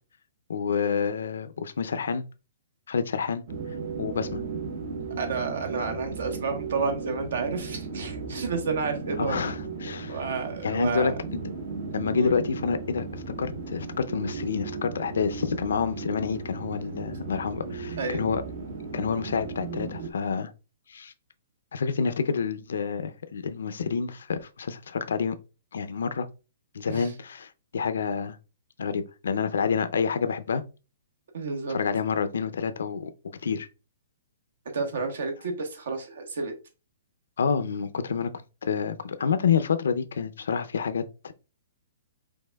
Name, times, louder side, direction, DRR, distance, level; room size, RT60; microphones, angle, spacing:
voice 1, 0.5-2.2 2.9-3.4 4.0-4.4 9.2-10.2 10.6-11.1 11.9-18.4 18.9-20.5 20.9-21.1 21.7-25.4 25.7-26.3 26.7-28.4 28.8-30.6 31.7-33.1 33.4-33.7 37.4-41.3, left 6 dB, 80° left, 0.5 m, -28 dB
sound 1, 3.5-20.1, right 4 dB, 50° right, 0.8 m, -36 dB
voice 2, 5.2-9.4 10.1-11.2 12.1-12.3 18.0-18.2 26.9-27.1 31.3-31.8 34.7-36.5, right 4 dB, 70° right, 1.2 m, -30 dB
5.3 x 3.4 x 2.2 m
hypercardioid pair, 170°, 0 cm